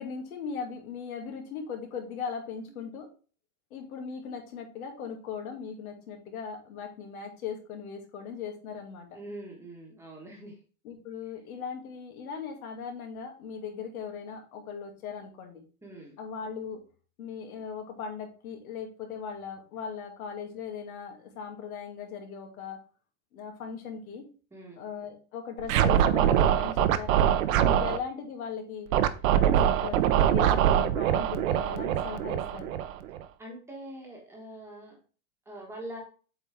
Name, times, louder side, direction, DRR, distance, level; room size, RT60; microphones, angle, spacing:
voice 1, 0.0-3.1 3.7-9.2 10.8-15.6 16.2-16.8 17.2-22.8 23.3-24.2 24.8-28.9 29.3-32.8, left 6 dB, 85° left, 2 dB, 2.5 m, -39 dB
voice 2, 9.1-10.6 15.8-16.2 24.5-24.8 27.6-28.0 33.4-35.0 35.5-36.0, right 1 dB, 5° right, -1 dB, 1.3 m, -43 dB
Scratching (performance technique), 25.6-28.0 28.9-33.2, right 10 dB, 70° right, 0.8 m, -23 dB
7.9 x 4.4 x 3.5 m, 0.38 s
supercardioid pair, 170°, 42 cm